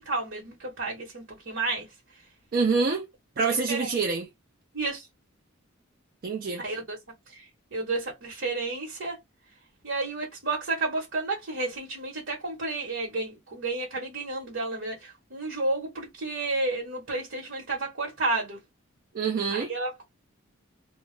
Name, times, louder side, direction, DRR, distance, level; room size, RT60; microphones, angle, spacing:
voice 1, 0.0-1.8 3.7-3.9 4.7-5.1 6.6-7.0 7.3-7.5 7.7-9.2 9.8-18.6 19.5-20.0, right 3 dB, 65° right, 0.9 m, -31 dB
voice 2, 2.5-3.1 3.4-4.3 6.2-6.6 19.1-19.7, right 4 dB, 45° right, 0.4 m, -26 dB
2.2 x 2.0 x 3.1 m
head